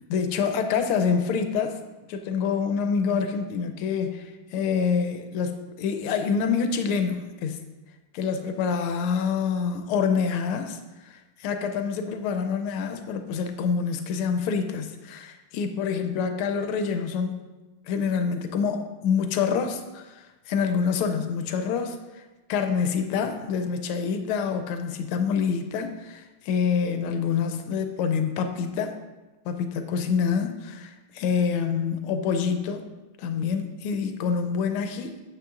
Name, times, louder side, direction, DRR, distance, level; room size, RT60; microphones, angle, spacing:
voice 1, 0.1-1.8 2.1-7.6 8.1-17.5 17.9-22.0 22.5-29.0 29.4-32.9 33.2-35.2, left 6 dB, 90° left, 7 dB, 1.5 m, -26 dB
8.7 x 7.5 x 2.4 m, 1.1 s
omnidirectional pair, 2.4 m